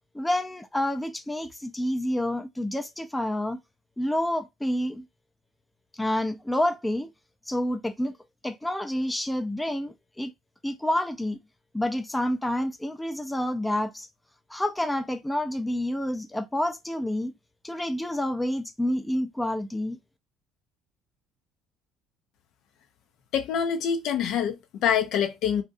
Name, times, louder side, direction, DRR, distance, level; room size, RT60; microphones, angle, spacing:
voice 1, 0.1-3.6 4.0-5.0 5.9-7.1 7.5-8.1 8.4-10.3 10.6-11.4 11.7-14.1 14.5-17.3 17.6-20.0, left 1 dB, 10° left, 0.4 m, -28 dB
voice 2, 23.3-25.6, left 8 dB, 65° left, 0.5 m, -25 dB
2.6 x 2.2 x 2.5 m
hypercardioid pair, 60°, 0 cm